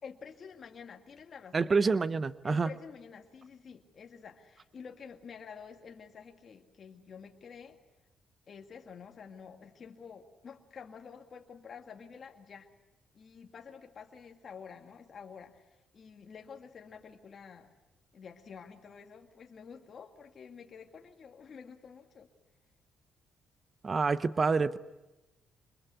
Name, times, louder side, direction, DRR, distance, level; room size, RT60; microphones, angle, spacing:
voice 1, 0.0-1.7 2.4-7.8 8.5-12.7 13.1-17.7 18.1-22.3, left 6 dB, 50° left, 3 dB, 2.1 m, -49 dB
voice 2, 1.5-2.7 23.8-24.8, right 4 dB, 35° right, 15 dB, 0.8 m, -27 dB
25.5 x 21.5 x 8.2 m, 1.0 s
cardioid pair, 90°, 0 cm